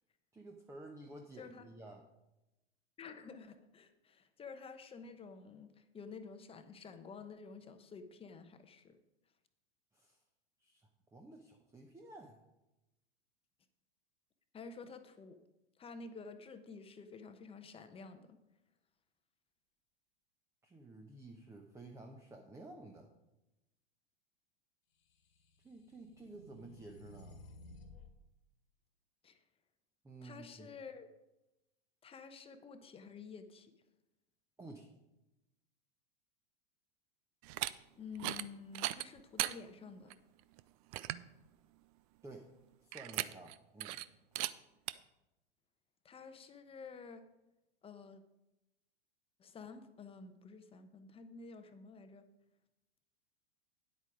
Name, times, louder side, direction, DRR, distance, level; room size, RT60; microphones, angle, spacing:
voice 1, 0.3-2.0 9.9-10.2 10.6-12.4 20.6-23.1 25.6-27.4 30.0-30.7 34.6-34.9 42.2-42.5 42.8-44.0, right 2 dB, 10° right, 3 dB, 0.9 m, -52 dB
voice 2, 1.4-1.7 3.0-9.0 14.5-15.4 15.8-18.4 29.2-29.4 30.2-31.1 32.0-33.7 38.0-40.1 46.0-47.3 47.8-48.2 49.4-52.2, left 5 dB, 20° left, 9 dB, 0.9 m, -51 dB
sound 1, 25.2-28.1, left 2 dB, 70° left, 1.8 m, -56 dB
sound 2, 37.4-37.7 38.1-38.5 38.7-39.5 40.1-40.2 40.6-40.7 40.9-41.3 42.9-43.5 43.8-44.0 44.3-44.5 44.9-45.0, right 16 dB, 35° right, 0.4 m, -37 dB
9.8 x 8.3 x 5.0 m, 0.94 s
figure-of-eight pair, 100°, 31 cm